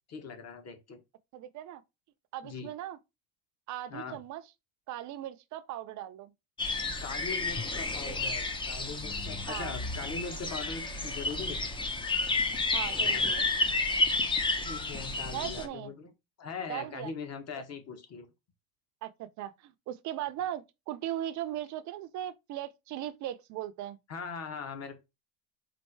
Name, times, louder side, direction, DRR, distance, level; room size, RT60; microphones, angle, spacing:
voice 1, 0.1-1.0 2.4-2.7 3.9-4.2 7.0-11.7 14.6-16.1 16.4-18.3 24.1-25.0, left 5 dB, 35° left, 1.2 m, -41 dB
voice 2, 1.3-1.8 2.3-3.0 3.7-4.4 4.9-6.3 8.1-8.2 9.5-9.8 12.7-13.5 15.3-15.9 16.7-17.1 19.0-24.0, right 12 dB, 45° right, 0.5 m, -38 dB
sound 1, 6.6-15.6, left 3 dB, 10° left, 0.5 m, -31 dB
4.4 x 2.6 x 4.5 m
cardioid pair, 140°, 44 cm